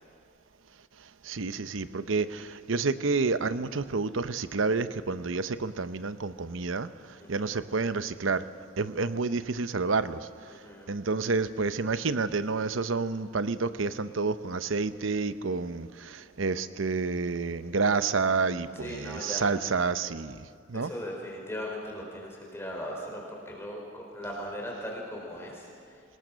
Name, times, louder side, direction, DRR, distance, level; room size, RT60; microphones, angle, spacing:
voice 1, 1.2-6.9 7.3-8.5 8.8-10.3 10.9-20.9, right 4 dB, 75° right, 13 dB, 0.8 m, -29 dB
voice 2, 7.2-7.5 10.5-10.9 18.7-19.6 20.7-26.0, equal, 15° left, -1 dB, 4.4 m, -39 dB
25.5 x 20.5 x 6.3 m, 2.3 s
head